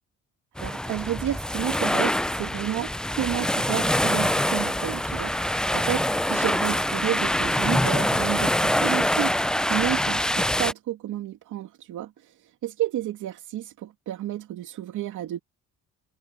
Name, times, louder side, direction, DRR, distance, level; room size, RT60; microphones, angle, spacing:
sound 1, 0.6-10.7, left 1 dB, ahead, 0.5 m, -25 dB
voice 1, 0.6-2.9 3.2-15.4, right 13 dB, 80° right, 2.6 m, -31 dB
cardioid pair, 90°, 30 cm